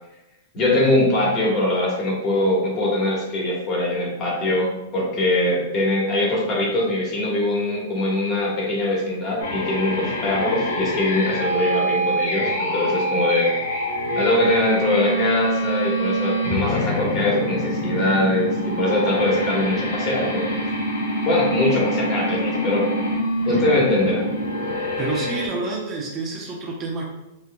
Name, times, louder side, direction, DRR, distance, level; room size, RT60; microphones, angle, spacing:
voice 1, 0.5-13.5 14.2-20.5 21.2-22.9 23.5-24.3, left 1 dB, 35° left, -4 dB, 1.4 m, -22 dB
sound 1, 9.4-25.5, equal, 80° left, 0.8 m, -25 dB
voice 2, 24.7-27.0, right 3 dB, 30° right, -1 dB, 0.7 m, -29 dB
4.3 x 2.4 x 2.2 m, 0.94 s
hypercardioid pair, 125°, 0 cm